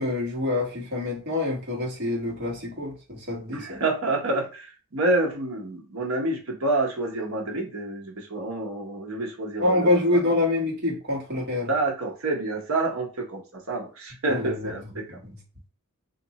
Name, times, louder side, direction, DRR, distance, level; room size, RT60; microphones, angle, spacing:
voice 1, 0.0-3.8 9.6-11.7 14.3-14.7 15.2-15.4, left 2 dB, 50° right, 1.2 m, -26 dB
voice 2, 3.5-10.3 11.7-15.2, right 2 dB, 75° right, 0.9 m, -28 dB
2.9 x 2.5 x 3.9 m
head